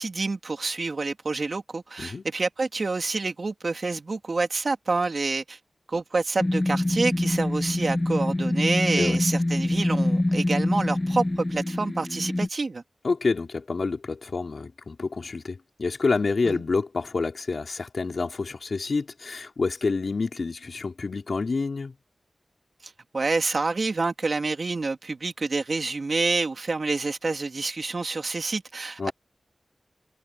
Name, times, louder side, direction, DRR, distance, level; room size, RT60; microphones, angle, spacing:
voice 1, 0.0-5.6 5.9-12.8 16.4-16.6 23.1-29.1, right 3 dB, 65° right, 3.1 m, -27 dB
sound 1, 6.4-12.5, left 1 dB, 30° left, 0.6 m, -25 dB
voice 2, 13.0-21.9 29.0-29.1, left 4 dB, 70° left, 3.6 m, -28 dB
cardioid pair, 45°, 0 cm